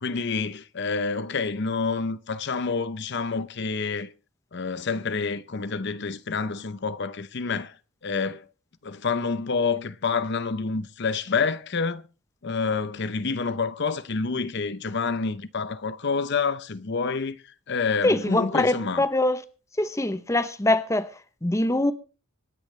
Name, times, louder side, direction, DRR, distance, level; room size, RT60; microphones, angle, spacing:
voice 1, 0.0-4.1 4.5-7.8 8.0-8.5 8.8-12.0 12.4-19.0, left 4 dB, 50° left, 0.7 m, -28 dB
voice 2, 18.0-19.4 19.8-21.1 21.4-21.9, left 1 dB, 15° left, 0.7 m, -23 dB
25.5 x 10.0 x 3.2 m
head